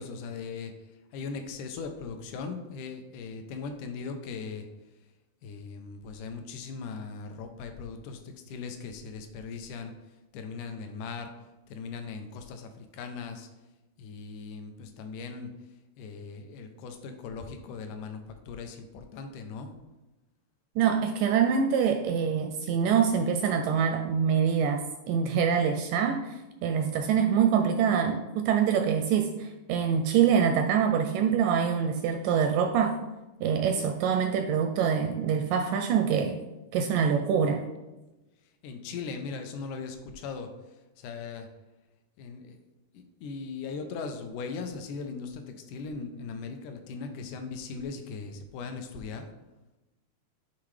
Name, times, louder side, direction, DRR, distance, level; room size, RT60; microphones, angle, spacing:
voice 1, 0.0-4.7 5.4-9.9 10.3-11.3 11.7-13.5 14.0-15.5 16.0-19.7 38.6-40.5 41.0-41.5 42.2-42.6 42.9-49.3, left 5 dB, 75° left, 6 dB, 1.9 m, -39 dB
voice 2, 20.8-33.0 33.4-36.4 36.7-37.6, right 7 dB, 85° right, 5 dB, 1.9 m, -25 dB
9.5 x 3.8 x 3.2 m, 1.0 s
omnidirectional pair, 4.1 m